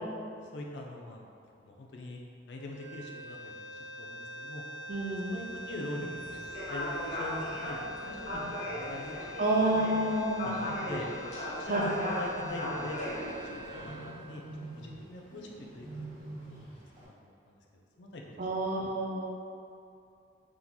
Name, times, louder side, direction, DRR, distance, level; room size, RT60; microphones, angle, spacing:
voice 1, 0.4-1.3 1.6-2.2 2.5-4.6 5.3-6.4 6.7-8.6 8.9-9.6 10.4-11.1 11.6-14.4 14.8-15.5 15.7-18.4, left 1 dB, 85° left, 0 dB, 0.5 m, -43 dB
sound 1, 2.6-14.8, equal, 5° right, 0.6 m, -45 dB
Bird, 4.9-17.1, right 1 dB, 25° right, 1.3 m, -48 dB
voice 2, 4.9-5.4 9.4-10.8 11.7-11.8 18.4-19.3, right 1 dB, 50° right, -1 dB, 0.6 m, -29 dB
sound 2, 6.5-14.0, left 1 dB, 40° left, 0.9 m, -37 dB
3.7 x 3.0 x 3.9 m, 2.5 s
head